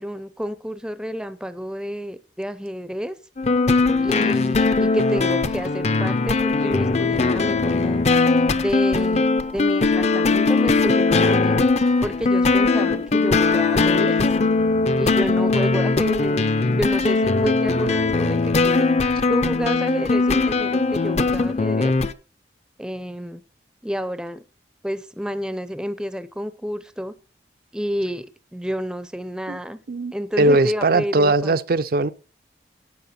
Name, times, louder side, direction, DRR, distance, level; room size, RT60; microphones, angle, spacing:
voice 1, 0.0-3.2 4.0-8.0 8.5-9.3 9.5-11.7 12.0-14.3 15.0-18.9 19.3-21.9 22.8-23.4 23.8-24.4 24.8-27.1 27.7-28.3 28.5-29.8 30.1-31.6, equal, 5° right, 0.5 m, -29 dB
sound 1, 3.4-22.1, left 3 dB, 40° left, 0.6 m, -20 dB
voice 2, 29.9-32.1, right 2 dB, 55° right, 0.5 m, -20 dB
12.0 x 8.5 x 4.3 m
head